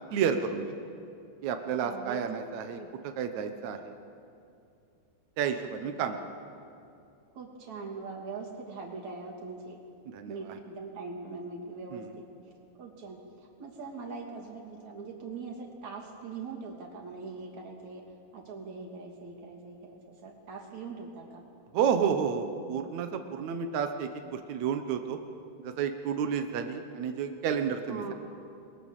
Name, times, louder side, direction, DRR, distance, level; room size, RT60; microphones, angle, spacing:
voice 1, 0.1-0.6 1.4-3.9 5.4-6.2 10.0-10.6 11.9-12.1 21.7-25.2 25.6-28.1, right 7 dB, 75° right, 6 dB, 1.7 m, -31 dB
voice 2, 1.8-2.2 2.8-2.9 6.0-6.1 7.4-9.8 10.2-12.2 12.8-13.2 13.6-18.0 18.3-21.4 27.9-28.1, right 4 dB, 45° right, 1 dB, 3.9 m, -41 dB
28.5 x 22.0 x 7.5 m, 2.5 s
omnidirectional pair, 5.0 m